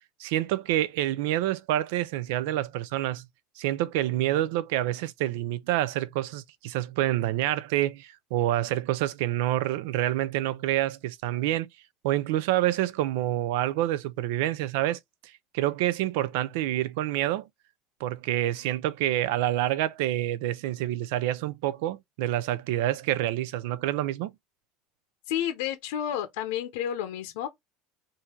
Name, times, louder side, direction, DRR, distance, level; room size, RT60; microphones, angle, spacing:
voice 1, 0.2-3.2 3.6-11.7 12.0-15.0 15.5-17.4 18.0-24.3, right 14 dB, 70° right, 0.4 m, -27 dB
voice 2, 25.3-27.5, left 10 dB, 80° left, 0.8 m, -30 dB
3.7 x 2.7 x 4.4 m
cardioid pair, 175°, 0 cm